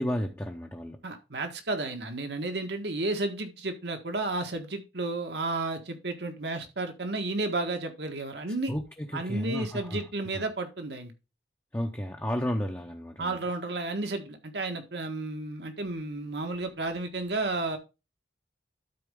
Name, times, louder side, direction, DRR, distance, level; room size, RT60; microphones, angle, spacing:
voice 1, 0.0-1.0 8.7-10.0 10.3-10.4 11.7-13.4, equal, 15° left, 0.8 m, -32 dB
voice 2, 1.0-8.7 9.1-11.1 13.2-17.8, right 2 dB, 70° right, 1.6 m, -32 dB
12.5 x 4.4 x 3.7 m
head